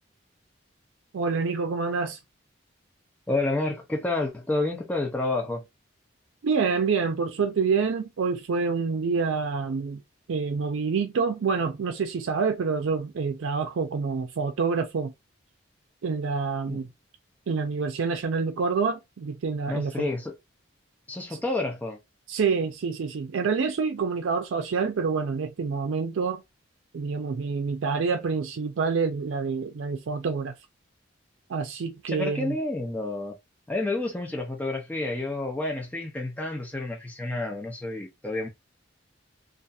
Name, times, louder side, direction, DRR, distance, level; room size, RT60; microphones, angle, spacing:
voice 1, 1.1-2.2 6.4-10.0 10.3-15.1 16.0-16.9 17.5-20.1 22.3-26.4 26.9-30.5 31.5-32.6, right 5 dB, 80° right, 0.4 m, -27 dB
voice 2, 3.3-5.6 16.7-16.8 19.7-20.3 21.1-22.0 32.1-33.4 33.7-38.5, left 2 dB, 10° left, 0.5 m, -29 dB
2.7 x 2.4 x 2.3 m
head